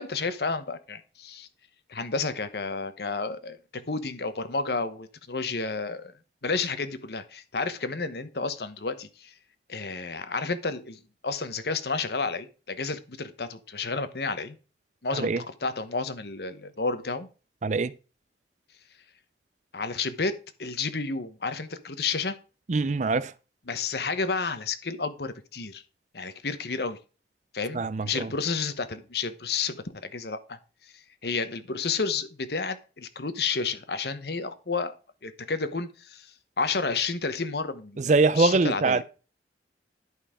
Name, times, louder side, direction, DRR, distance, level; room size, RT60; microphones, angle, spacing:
voice 1, 0.0-1.5 1.9-6.1 6.4-9.3 9.7-14.6 15.0-17.3 19.7-20.3 20.6-22.4 23.7-25.8 26.1-27.0 27.5-30.6 31.2-34.9 35.2-36.3 36.6-39.0, left 4 dB, 60° left, 1.0 m, -31 dB
voice 2, 17.6-17.9 22.7-23.3 27.7-28.3 38.0-39.0, right 3 dB, 40° right, 0.5 m, -23 dB
11.0 x 5.5 x 4.9 m
head